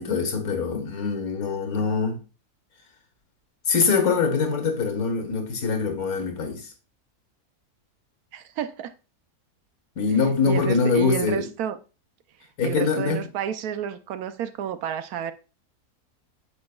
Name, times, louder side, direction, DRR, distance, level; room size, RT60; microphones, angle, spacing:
voice 1, 0.0-2.2 3.7-6.7 10.0-11.5 12.6-13.2, left 5 dB, 70° left, 1.8 m, -23 dB
voice 2, 8.3-8.9 10.4-11.8 12.6-15.3, right 9 dB, 85° right, 1.2 m, -30 dB
8.6 x 6.5 x 2.3 m
omnidirectional pair, 1.6 m